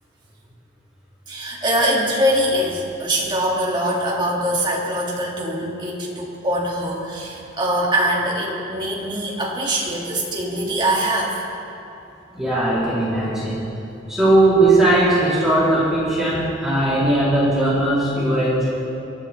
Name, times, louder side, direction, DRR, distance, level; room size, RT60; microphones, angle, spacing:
voice 1, 1.3-11.4, right 1 dB, 25° right, -4 dB, 2.7 m, -23 dB
voice 2, 12.3-13.6 14.1-18.7, right 1 dB, 5° right, -11 dB, 3.9 m, -18 dB
23.5 x 13.5 x 3.6 m, 2.9 s
head